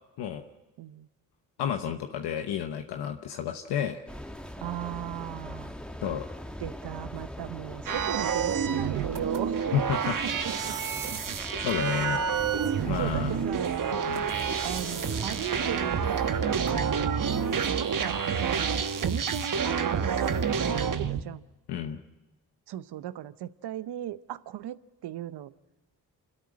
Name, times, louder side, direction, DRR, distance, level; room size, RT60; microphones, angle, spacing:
voice 1, 0.8-1.1 4.6-5.7 6.6-9.6 10.0-10.8 11.3-11.4 12.9-13.9 14.6-16.7 17.5-21.5 22.7-25.5, right 12 dB, 85° right, 15 dB, 0.8 m, -37 dB
voice 2, 1.6-4.0 6.0-6.2 9.7-10.2 11.6-12.2 12.8-13.4 13.9-14.2 21.7-22.0, left 9 dB, 90° left, 5 dB, 1.0 m, -31 dB
sound 1, 4.1-16.9, equal, ahead, 1.6 m, -42 dB
sound 2, 7.9-21.2, right 7 dB, 55° right, 1.3 m, -28 dB
28.0 x 13.0 x 9.6 m, 1.1 s
supercardioid pair, 45°, 39 cm